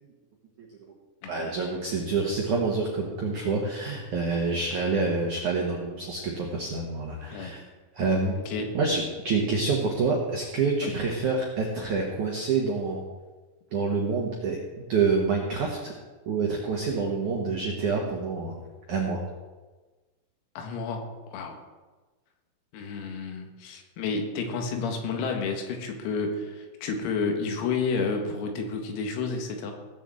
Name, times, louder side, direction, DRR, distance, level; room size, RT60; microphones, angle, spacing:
voice 1, 1.3-7.6 7.9-8.4 8.7-13.0 13.7-15.9 16.3-18.5 18.9-19.2, right 4 dB, 80° right, -1 dB, 1.7 m, -27 dB
voice 2, 20.6-21.6 22.7-29.7, left 4 dB, 85° left, 4 dB, 4.5 m, -31 dB
17.0 x 6.7 x 7.8 m, 1.3 s
omnidirectional pair, 6.0 m